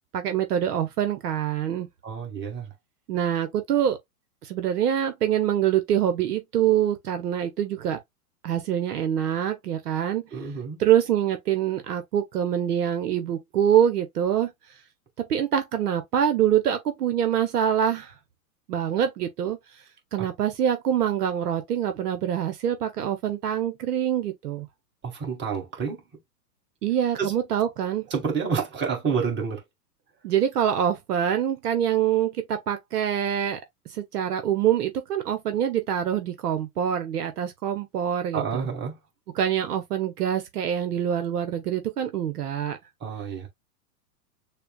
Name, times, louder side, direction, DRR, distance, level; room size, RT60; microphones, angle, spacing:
voice 1, 0.1-1.9 3.1-4.0 4.4-8.0 8.4-10.3 10.8-14.5 15.3-18.1 18.7-19.6 20.1-24.7 26.8-28.1 30.2-33.6 33.9-38.7 39.3-42.8, right 10 dB, 75° right, 0.9 m, -25 dB
voice 2, 2.0-2.7 10.3-10.8 20.2-20.3 25.0-26.0 27.2-27.3 28.1-29.6 38.3-39.0 43.0-43.5, right 6 dB, 25° right, 1.9 m, -29 dB
6.7 x 2.3 x 2.3 m
hypercardioid pair, 115°, 47 cm